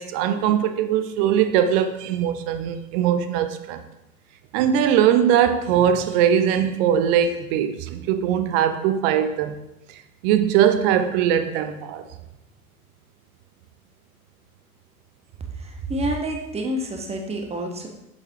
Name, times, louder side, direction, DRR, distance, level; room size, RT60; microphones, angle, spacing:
voice 1, 0.0-3.8 4.5-9.6 10.2-12.1, right 9 dB, 40° right, 9 dB, 0.7 m, -21 dB
voice 2, 15.6-17.9, right 1 dB, 15° right, 3 dB, 1.1 m, -28 dB
7.8 x 6.9 x 2.9 m, 0.89 s
figure-of-eight pair, 80°, 43 cm